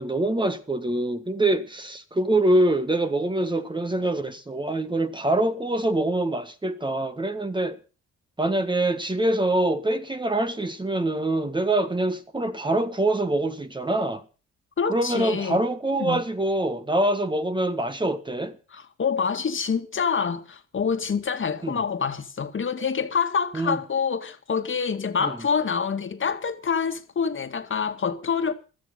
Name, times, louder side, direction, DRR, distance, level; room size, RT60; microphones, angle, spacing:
voice 1, 0.0-7.8 8.4-14.2 14.9-18.5 21.6-21.8 23.5-23.8 25.2-25.3, right 1 dB, 15° right, 1.7 m, -24 dB
voice 2, 14.8-15.6 16.0-16.2 18.7-28.5, left 6 dB, 40° left, 2.1 m, -26 dB
16.0 x 13.5 x 5.4 m
cardioid pair, 90°, 30 cm